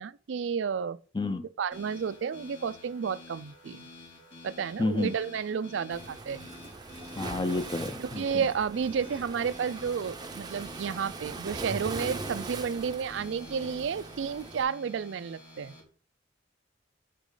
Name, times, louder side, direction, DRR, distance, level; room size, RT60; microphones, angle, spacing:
voice 1, 0.0-1.0 1.6-3.9 4.4-6.5 8.0-15.7, right 6 dB, 70° right, 0.4 m, -31 dB
sound 1, 1.7-15.8, left 1 dB, 80° left, 2.7 m, -49 dB
voice 2, 4.8-5.1 7.2-8.4, left 2 dB, 25° left, 0.5 m, -30 dB
Waves surf, 5.9-14.6, right 3 dB, 20° right, 0.6 m, -41 dB
8.3 x 4.1 x 3.8 m
head